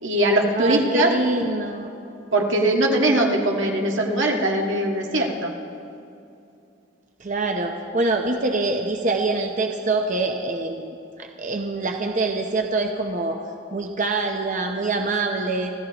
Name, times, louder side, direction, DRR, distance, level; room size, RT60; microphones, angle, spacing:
voice 1, 0.0-1.1 2.3-5.5, right 1 dB, 80° right, 0 dB, 1.7 m, -21 dB
voice 2, 0.5-1.9 7.2-10.9 11.2-13.4 13.7-15.7, right 2 dB, 40° right, 3 dB, 0.8 m, -25 dB
26.0 x 14.0 x 3.0 m, 2.7 s
head